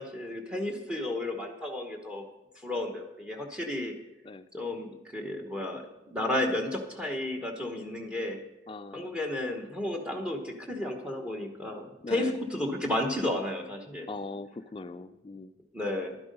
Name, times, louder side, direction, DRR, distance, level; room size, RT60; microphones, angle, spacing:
voice 1, 0.0-2.2 2.6-4.0 4.5-5.8 6.1-8.4 8.9-14.1 15.7-16.2, left 1 dB, 5° right, 4 dB, 1.0 m, -32 dB
voice 2, 8.7-9.1 12.0-12.4 14.1-15.6, left 3 dB, 25° left, 12 dB, 0.3 m, -40 dB
11.5 x 10.5 x 5.3 m, 1.0 s
head